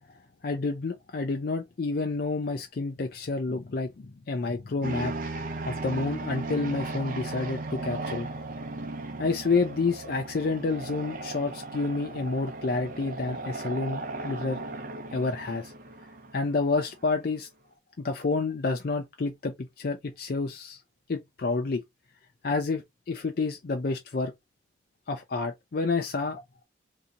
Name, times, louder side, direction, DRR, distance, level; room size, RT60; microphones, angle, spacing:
voice 1, 0.4-5.1 5.6-8.3 9.2-14.6 15.1-15.7 16.3-17.5 18.0-20.8 21.1-21.8 22.4-24.3 25.1-26.4, left 3 dB, 55° left, 0.4 m, -29 dB
sound 1, 4.8-16.9, right 2 dB, 50° right, 0.6 m, -36 dB
2.7 x 2.7 x 3.6 m
head